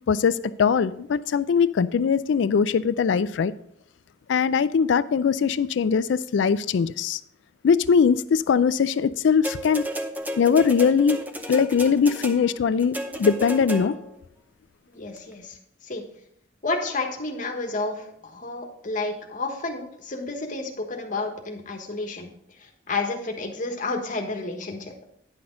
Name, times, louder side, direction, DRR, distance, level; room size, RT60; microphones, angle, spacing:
voice 1, 0.1-3.5 4.3-7.2 7.6-9.8 10.4-11.2 11.5-14.0, left 6 dB, 65° left, 0.3 m, -21 dB
sound 1, 9.4-14.2 15.2-15.3, equal, 10° right, 0.7 m, -33 dB
voice 2, 14.9-15.6 15.8-16.0 16.6-22.3 22.6-24.9, left 3 dB, 45° left, 1.3 m, -31 dB
9.9 x 6.0 x 3.7 m
head